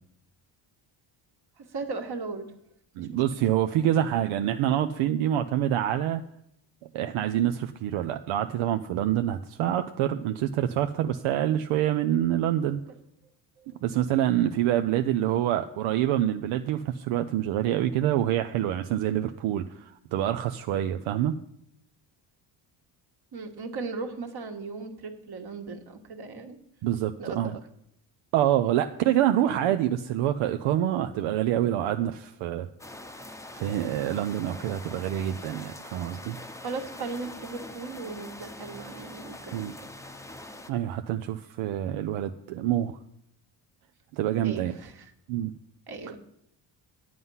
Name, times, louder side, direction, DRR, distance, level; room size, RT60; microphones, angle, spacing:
voice 1, 1.6-2.5 3.0-3.2 12.6-12.7 13.6-13.8 23.3-26.6 27.2-27.5 29.5-29.7 36.6-39.9 44.4-45.1 45.9-46.2, right 4 dB, 50° right, 4 dB, 1.7 m, -37 dB
voice 2, 3.0-6.2 6.9-12.8 13.8-21.4 26.8-27.6 28.3-32.7 33.5-36.4 39.5-39.7 40.7-43.0 44.1-44.7 45.3-45.5, right 11 dB, 80° right, 8 dB, 0.7 m, -26 dB
sound 1, 32.8-40.7, left 1 dB, 5° left, 0.7 m, -43 dB
9.6 x 7.7 x 5.6 m, 0.74 s
cardioid pair, 80°, 47 cm